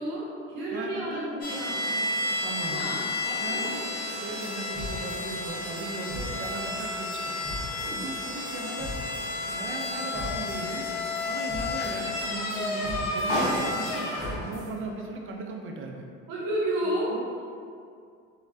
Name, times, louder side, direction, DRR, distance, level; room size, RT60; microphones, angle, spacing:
voice 1, 0.0-2.0 2.7-3.7 7.7-8.1 16.3-17.4, right 1 dB, 55° right, -6 dB, 0.8 m, -32 dB
voice 2, 0.7-1.4 2.4-2.9 3.4-7.4 8.0-8.9 9.5-10.9 11.2-14.1 14.4-16.1 17.1-17.4, right 3 dB, 35° right, 2 dB, 0.4 m, -37 dB
sound 1, 1.4-14.6, left 2 dB, 70° left, 0.7 m, -31 dB
sound 2, 4.1-4.2 4.4-14.7, left 1 dB, 10° left, 1.4 m, -42 dB
3.2 x 2.2 x 2.6 m, 2.3 s
hypercardioid pair, 75°, 37 cm